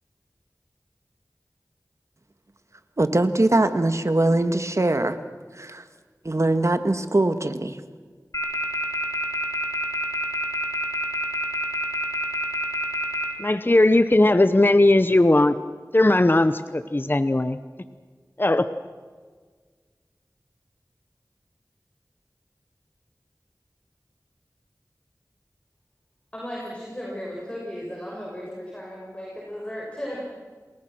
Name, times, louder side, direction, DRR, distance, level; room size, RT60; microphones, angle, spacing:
voice 1, 3.0-5.2 5.6-5.8 6.2-7.8, right 2 dB, 50° right, 9 dB, 1.8 m, -22 dB
sound 1, 8.3-13.2, left 1 dB, 55° left, 4.3 m, -26 dB
voice 2, 13.4-15.6 15.9-17.6 18.4-18.7, left 2 dB, 35° left, 12 dB, 0.9 m, -18 dB
voice 3, 26.3-30.4, equal, 20° left, -3 dB, 6.6 m, -35 dB
29.0 x 20.5 x 6.1 m, 1.6 s
wide cardioid pair, 50°, 6 cm